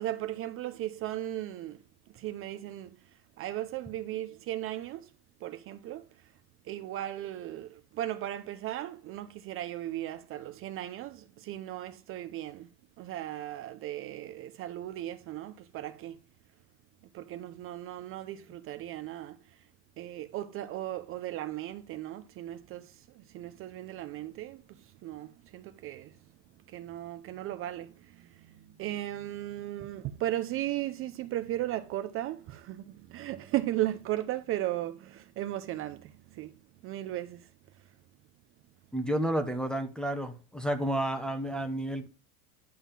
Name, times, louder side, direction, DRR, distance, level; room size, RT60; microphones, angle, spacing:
voice 1, 0.0-1.8 2.2-2.9 3.4-5.1 5.4-6.0 6.7-12.7 13.0-16.1 17.1-19.3 20.0-22.9 23.3-24.6 25.0-26.1 26.7-27.9 28.8-36.0 36.4-36.5 36.8-37.4, right 14 dB, 30° right, 0.5 m, -36 dB
voice 2, 38.9-42.1, right 1 dB, ahead, 0.8 m, -31 dB
10.0 x 3.6 x 7.2 m
supercardioid pair, 135°, 46 cm